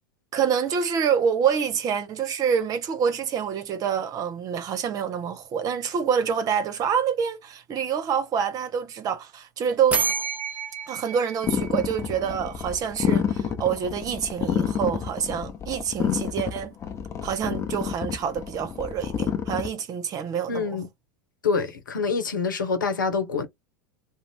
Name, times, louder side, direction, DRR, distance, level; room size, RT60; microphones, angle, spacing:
voice 1, 0.3-10.0 10.9-16.8 17.2-20.8, right 7 dB, 35° right, 0.8 m, -26 dB
sound 1, 9.9-12.7, right 5 dB, 15° right, 1.1 m, -30 dB
sound 2, 11.4-19.7, left 7 dB, 30° left, 0.6 m, -28 dB
voice 2, 20.5-20.9 21.4-23.5, left 5 dB, 80° left, 0.8 m, -26 dB
2.6 x 2.0 x 3.3 m
hypercardioid pair, 85°, 10 cm